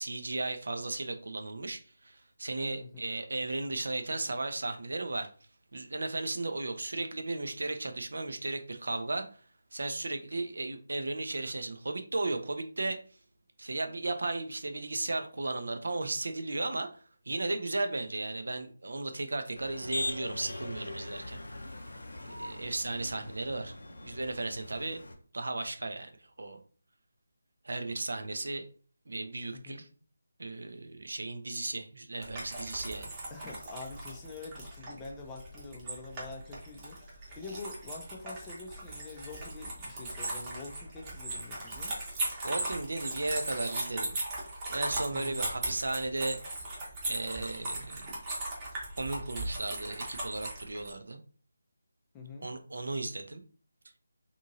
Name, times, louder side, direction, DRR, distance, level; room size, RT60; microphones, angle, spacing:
voice 1, 0.0-5.3 5.7-9.3 9.7-13.0 13.6-16.9 17.3-21.4 22.3-23.7 24.0-25.0 25.3-26.1 26.4-26.6 27.6-28.6 29.1-29.9 30.4-33.1 42.4-44.1 44.7-46.4 47.1-48.1 49.0-51.2 52.4-53.4, right 2 dB, 65° right, 7 dB, 0.5 m, -35 dB
Motor vehicle (road), 19.6-25.1, left 1 dB, 70° left, 0.6 m, -41 dB
voice 2, 29.5-29.8 33.3-41.9 45.1-45.4 52.1-52.5, left 3 dB, 15° left, 1 dB, 0.4 m, -45 dB
Critters creeping, 32.2-50.9, right 2 dB, 20° right, 0.9 m, -38 dB
2.8 x 2.6 x 2.6 m, 0.41 s
figure-of-eight pair, 155°, 0 cm